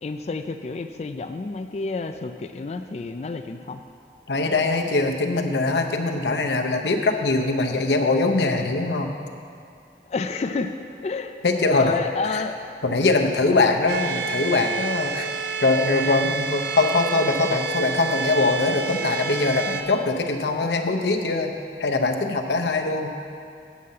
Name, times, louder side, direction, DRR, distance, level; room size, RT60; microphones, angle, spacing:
voice 1, 0.0-3.8 10.1-10.8 11.0-11.4 11.7-12.6 16.1-16.2, left 4 dB, 35° left, 8 dB, 0.3 m, -29 dB
voice 2, 4.3-9.1 11.4-12.0 12.3-12.4 12.8-15.3 15.6-21.5 21.8-23.1, left 3 dB, 80° left, 4 dB, 0.8 m, -22 dB
sound 1, 13.9-19.8, right 6 dB, 85° right, 0.6 m, -29 dB
8.3 x 5.5 x 7.5 m, 2.5 s
head